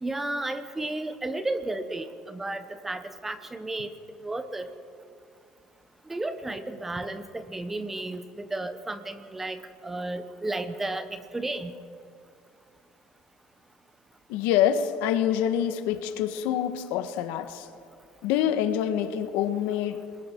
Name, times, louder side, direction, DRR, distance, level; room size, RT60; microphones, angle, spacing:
voice 1, 0.0-3.9 4.2-4.7 6.1-9.6 9.8-11.7, right 2 dB, 10° right, 11 dB, 0.9 m, -33 dB
voice 2, 14.3-17.7 18.2-20.0, left 10 dB, 85° left, 10 dB, 1.3 m, -26 dB
27.5 x 21.5 x 4.5 m, 2.3 s
cardioid pair, 160°, 3 cm